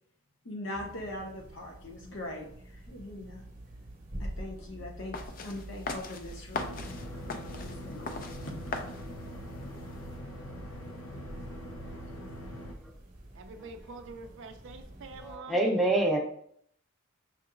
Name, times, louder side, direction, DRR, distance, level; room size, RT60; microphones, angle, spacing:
voice 1, 0.4-3.4 4.2-6.8 7.3-8.2, left 1 dB, 60° left, 1 dB, 0.9 m, -41 dB
sound 1, 0.7-15.4, right 1 dB, 40° right, 0.9 m, -47 dB
sound 2, 5.1-10.2, left 3 dB, 40° left, 0.4 m, -40 dB
sound 3, 6.5-12.7, equal, 90° left, 0.7 m, -42 dB
voice 2, 13.3-15.6, right 3 dB, 60° right, 5 dB, 0.4 m, -45 dB
voice 3, 15.2-16.2, right 1 dB, ahead, -1 dB, 0.6 m, -26 dB
5.8 x 2.8 x 2.5 m, 0.65 s
head